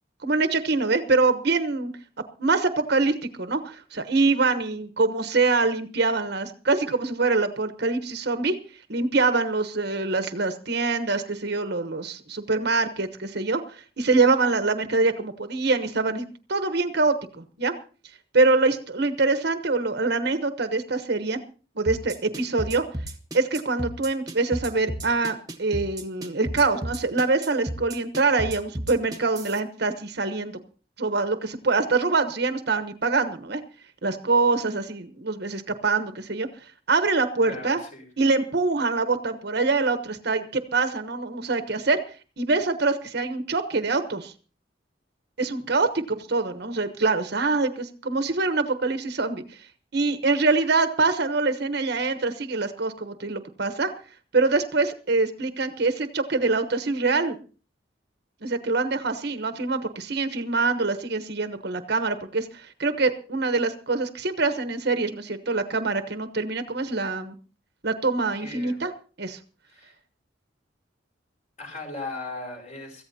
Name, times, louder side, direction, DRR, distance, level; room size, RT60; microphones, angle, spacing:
voice 1, 0.2-1.9 2.4-8.6 8.9-17.7 18.3-21.4 21.7-22.8 23.3-30.6 31.0-33.6 34.0-37.8 38.2-42.0 42.4-44.3 45.4-49.7 49.9-53.9 54.3-57.3 58.4-67.3 67.8-68.9 69.2-69.4, right 3 dB, 60° right, 8 dB, 1.1 m, -24 dB
sound 1, 21.9-29.6, right 1 dB, 20° right, 1.4 m, -33 dB
voice 2, 37.4-38.0 68.4-68.8 69.7-69.9 71.6-73.0, left 2 dB, 40° left, 2 dB, 5.4 m, -37 dB
23.5 x 15.0 x 2.8 m, 0.36 s
head